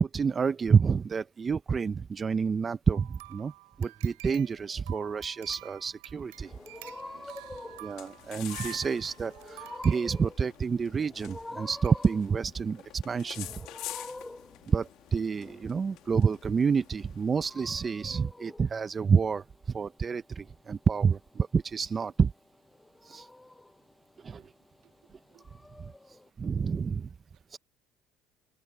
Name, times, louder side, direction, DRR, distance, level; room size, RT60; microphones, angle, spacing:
voice 1, 0.0-3.5 3.8-6.5 7.8-13.5 14.7-19.4 19.7-22.3 23.0-23.3 24.2-24.4 26.4-27.1 27.5-27.6, right 6 dB, 30° right, 0.7 m, -28 dB
sound 1, 2.9-10.7 11.3-11.4 11.8-12.0 12.4-12.5, right 25 dB, 90° right, 7.6 m, -49 dB
sound 2, 6.2-18.0, left 16 dB, 70° left, 2.4 m, -48 dB
sound 3, 6.4-26.3, left 2 dB, 10° left, 7.0 m, -48 dB
voice 2, 7.1-7.8 14.6-14.8 24.3-24.5 24.8-24.9 25.3-25.5 27.3-27.6, right 15 dB, 65° right, 2.0 m, -61 dB
supercardioid pair, 90°, 0 cm